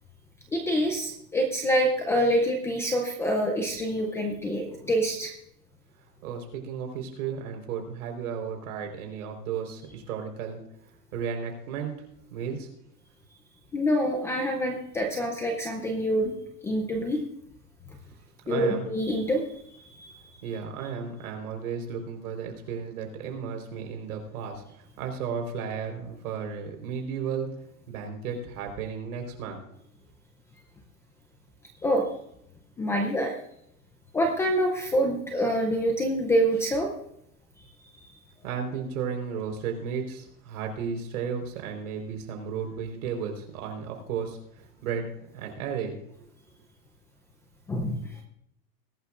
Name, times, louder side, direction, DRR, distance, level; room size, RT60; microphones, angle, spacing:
voice 1, 0.5-5.3 13.7-16.3 16.6-17.2 18.5-19.4 19.9-20.2 31.8-32.1 32.8-33.4 34.1-36.9 38.0-38.1 47.7-48.1, equal, 5° left, 2 dB, 0.5 m, -26 dB
voice 2, 6.2-10.6 11.1-12.7 18.5-18.9 20.4-27.5 27.9-29.6 38.4-45.1 45.3-46.0, right 6 dB, 65° right, 4 dB, 4.3 m, -34 dB
21.0 x 11.5 x 2.5 m, 0.75 s
supercardioid pair, 160°, 46 cm